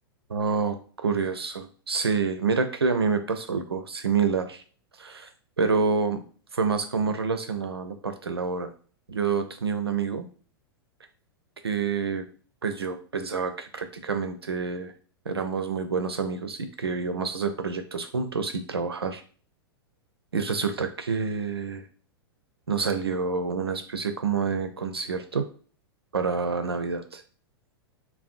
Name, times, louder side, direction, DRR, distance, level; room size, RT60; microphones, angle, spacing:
voice 1, 0.3-0.8 1.0-4.6 5.0-5.3 5.6-6.2 6.5-8.7 9.1-10.3 11.6-12.2 12.6-14.9 15.3-19.2 20.3-21.8 22.7-25.5 26.1-27.2, right 5 dB, 80° right, 8 dB, 0.4 m, -27 dB
2.5 x 2.1 x 2.5 m, 0.41 s
figure-of-eight pair, 100°, 13 cm